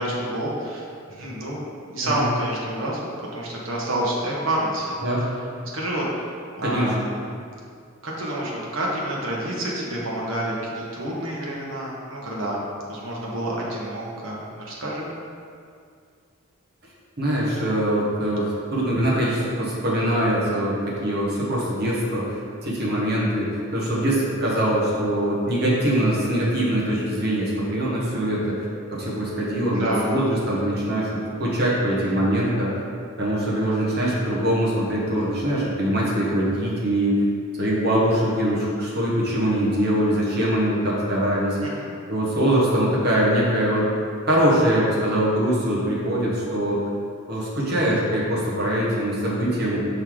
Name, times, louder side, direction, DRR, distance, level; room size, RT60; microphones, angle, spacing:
voice 1, 0.0-5.0 5.7-6.1 6.6-7.3 8.0-12.6 12.9-15.1 29.7-30.1 41.6-41.9, right 1 dB, 70° right, -4 dB, 1.2 m, -28 dB
voice 2, 6.6-6.9 17.2-28.5 28.9-32.7 33.2-37.2 37.6-41.6 42.1-43.9 44.3-46.9 47.3-49.8, right 1 dB, 50° right, -6 dB, 1.3 m, -23 dB
5.5 x 3.8 x 4.8 m, 2.3 s
head